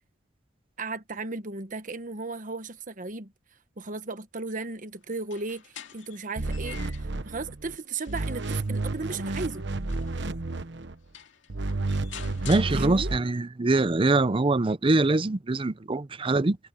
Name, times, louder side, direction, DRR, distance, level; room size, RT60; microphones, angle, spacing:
voice 1, 0.8-3.3 3.8-6.8 7.2-9.6 12.7-13.1, right 3 dB, 45° right, 1.3 m, -35 dB
sound 1, 5.2-7.2 7.7-10.3 10.8-10.9 11.1-13.4, left 9 dB, 85° left, 2.3 m, -47 dB
sound 2, 6.4-7.8 8.1-10.9 11.5-13.2, right 2 dB, 65° right, 1.0 m, -31 dB
voice 2, 12.5-16.6, right 2 dB, 30° right, 0.6 m, -23 dB
head